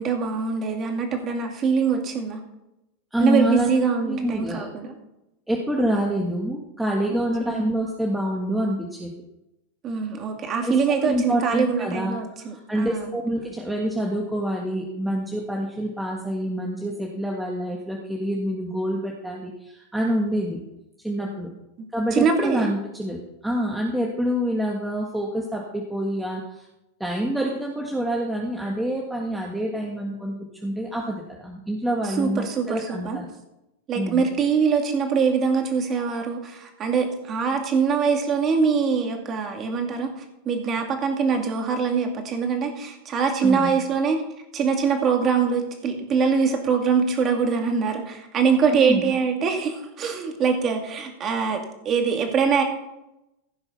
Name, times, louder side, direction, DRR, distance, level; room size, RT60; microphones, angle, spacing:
voice 1, 0.0-2.4 3.2-4.9 7.1-7.6 9.8-13.1 22.1-22.7 32.2-33.2 33.9-40.1 40.4-44.2 44.5-51.6 51.8-52.6, right 5 dB, 30° right, 4 dB, 2.5 m, -23 dB
voice 2, 3.1-3.7 4.0-4.7 5.5-9.1 10.6-20.6 21.0-21.5 21.9-26.7 27.0-30.3 30.6-33.3 33.9-34.2 43.4-43.8 48.7-49.1, equal, 5° right, -1 dB, 1.7 m, -27 dB
15.5 x 5.5 x 5.7 m, 0.90 s
supercardioid pair, 125°, 0 cm